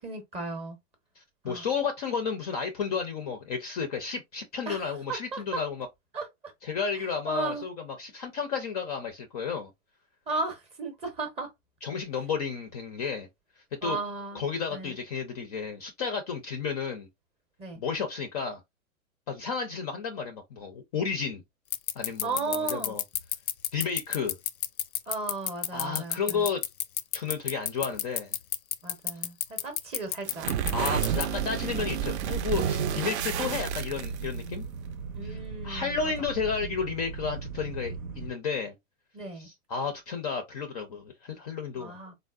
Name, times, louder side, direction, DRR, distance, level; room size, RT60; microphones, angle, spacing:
voice 1, 0.0-0.8 1.5-1.7 4.7-4.8 5.1-5.6 6.1-6.5 7.2-7.6 10.3-11.5 13.8-14.4 14.7-15.0 17.6-17.8 22.2-22.9 25.1-26.5 28.8-30.5 31.7-31.9 33.1-33.4 35.1-36.1 39.1-39.5 41.8-42.1, right 3 dB, 15° right, 0.6 m, -35 dB
voice 2, 1.2-5.9 6.6-9.7 11.8-13.3 13.8-14.0 14.3-17.1 17.8-18.6 19.3-21.4 22.0-23.0 23.7-24.3 25.7-26.6 27.1-28.3 30.7-34.7 35.2-35.4 35.6-38.7 39.4-42.0, left 5 dB, 30° left, 0.4 m, -32 dB
sound 1, 21.7-31.2, left 11 dB, 85° left, 0.5 m, -28 dB
sound 2, 30.3-34.5, right 9 dB, 55° right, 0.5 m, -30 dB
sound 3, 32.6-38.3, right 5 dB, 85° right, 0.7 m, -38 dB
3.6 x 2.0 x 2.3 m
hypercardioid pair, 130°, 42 cm